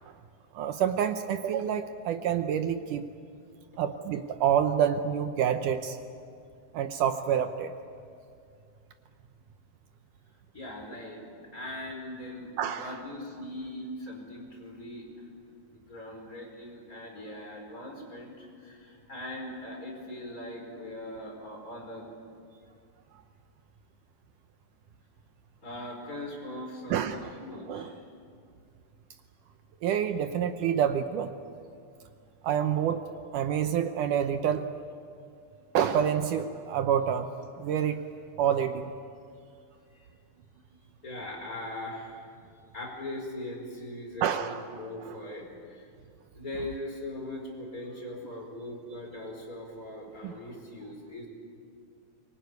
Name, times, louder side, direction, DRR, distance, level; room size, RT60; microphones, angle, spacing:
voice 1, 0.5-3.0 3.8-6.0 6.7-7.7 12.6-13.0 26.9-27.3 27.7-28.0 29.8-31.3 32.4-33.0 33.3-34.7 35.7-37.3 37.6-38.0 38.4-38.9 44.2-44.6 45.1-45.2 50.2-50.3, right 9 dB, 75° right, 8 dB, 2.3 m, -27 dB
voice 2, 10.5-11.2 11.5-15.3 15.7-22.1 25.6-28.0 39.9-40.1 40.7-45.9 46.3-51.3, left 1 dB, 25° left, 0 dB, 5.3 m, -40 dB
24.0 x 22.5 x 9.5 m, 2.3 s
omnidirectional pair, 3.9 m